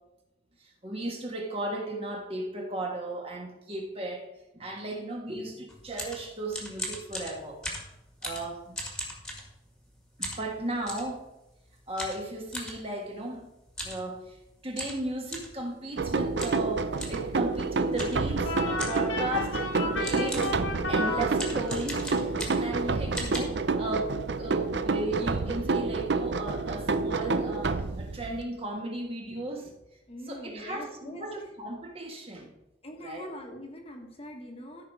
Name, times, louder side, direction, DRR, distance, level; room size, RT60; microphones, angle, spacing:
voice 1, 0.6-4.3 4.5-7.6 8.2-8.6 10.2-11.2 11.9-13.4 13.8-14.4 14.6-18.5 18.9-20.5 20.9-29.7 30.3-32.5 33.0-33.2, right 2 dB, 30° right, 0 dB, 1.6 m, -35 dB
sound 1, 5.7-9.9 10.2-11.1 12.0-12.8 13.7-14.0 14.3-14.4 14.7-15.6 16.4-16.7 17.0-17.2 18.0-18.3 18.8-19.1 19.7-19.8 20.0-20.6 21.3-22.8 23.1-23.4, equal, 5° left, 1.8 m, -38 dB
sound 2, 16.0-28.4, right 3 dB, 65° right, 0.6 m, -29 dB
sound 3, 18.4-22.0, left 3 dB, 80° left, 2.0 m, -34 dB
voice 2, 30.1-31.5 32.8-34.9, left 1 dB, 30° left, 2 dB, 1.4 m, -43 dB
13.5 x 5.9 x 4.8 m, 0.91 s
head